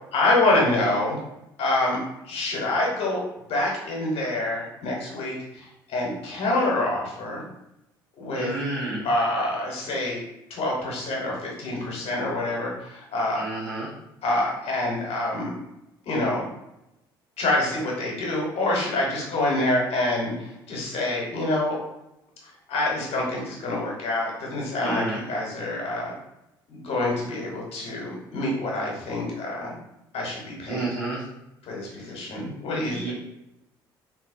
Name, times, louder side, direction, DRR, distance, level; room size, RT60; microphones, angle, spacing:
voice 1, 0.1-1.2 1.6-2.0 2.2-3.2 3.5-7.5 8.2-8.5 8.8-10.2 10.5-13.4 14.2-15.5 16.1-16.4 17.4-21.8 22.4-26.2 26.7-29.8 30.1-30.9 31.6-33.1, left 2 dB, 55° left, -2 dB, 1.2 m, -26 dB
voice 2, 8.3-9.0 13.4-13.9 24.8-25.2 30.7-31.2 32.9-33.1, right 2 dB, 80° right, -7 dB, 1.4 m, -30 dB
3.0 x 2.8 x 2.6 m, 0.88 s
hypercardioid pair, 55°, 12 cm